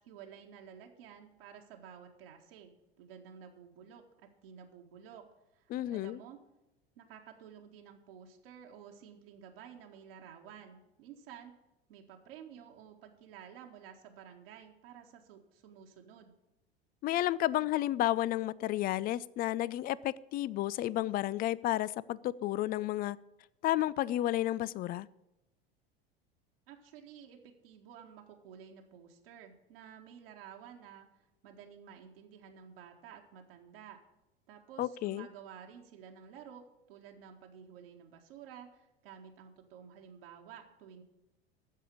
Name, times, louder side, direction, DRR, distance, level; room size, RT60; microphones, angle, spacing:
voice 1, 0.0-5.3 5.5-6.4 7.0-11.5 11.9-16.3 26.7-34.0 34.5-41.0, right 8 dB, 65° right, 1.8 m, -52 dB
voice 2, 5.7-6.2 17.0-23.2 23.6-25.1 34.8-35.3, left 14 dB, 30° left, 0.4 m, -32 dB
14.0 x 5.0 x 8.5 m
hypercardioid pair, 80°, 31 cm